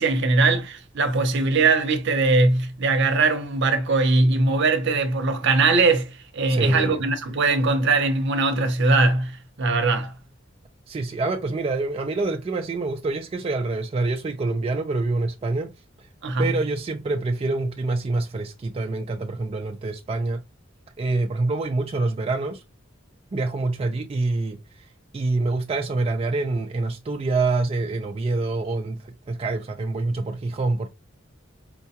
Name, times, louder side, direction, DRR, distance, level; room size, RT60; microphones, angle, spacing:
voice 1, 0.0-10.1 16.2-16.5, right 3 dB, 60° right, 0.7 m, -21 dB
voice 2, 6.5-7.0 10.9-15.7 16.0-16.1 16.4-20.4 21.0-22.6 23.3-24.9 25.1-30.9, right 3 dB, 30° right, 0.3 m, -26 dB
4.5 x 2.2 x 2.8 m
head